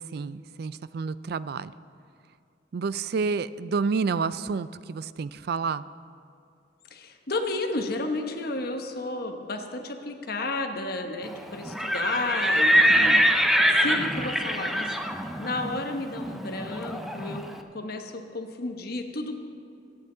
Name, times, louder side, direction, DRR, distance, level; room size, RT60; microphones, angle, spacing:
voice 1, 0.0-1.7 2.7-5.8, right 5 dB, 60° right, 16 dB, 0.4 m, -29 dB
voice 2, 6.9-13.1 13.8-14.9 15.4-17.4 17.7-19.4, left 2 dB, 55° left, 5 dB, 1.0 m, -32 dB
Livestock farm animals working animals, 11.6-17.5, equal, ahead, 0.5 m, -24 dB
23.0 x 8.8 x 3.9 m, 2.5 s
head